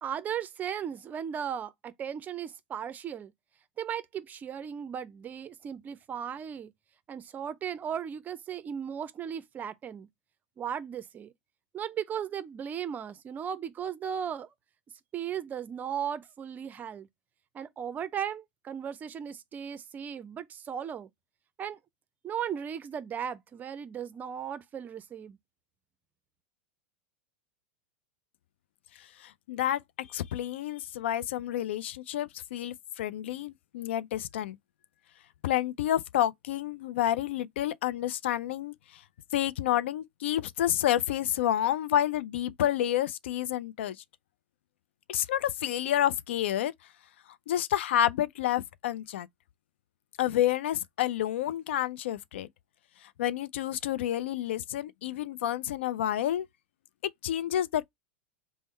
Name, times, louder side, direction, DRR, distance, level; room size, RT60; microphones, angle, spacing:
voice 1, 0.0-3.3 3.8-6.7 7.1-10.1 10.6-11.3 11.7-14.5 15.1-17.1 17.5-21.1 21.6-21.8 22.2-25.4, right 8 dB, 25° right, 0.5 m, -36 dB
voice 2, 29.2-34.6 35.4-39.0 39.3-44.0 45.1-46.7 47.5-49.3 50.2-52.5 53.2-56.5 57.2-57.9, left 12 dB, 80° left, 0.3 m, -29 dB
3.5 x 2.0 x 4.2 m
hypercardioid pair, 110°, 6 cm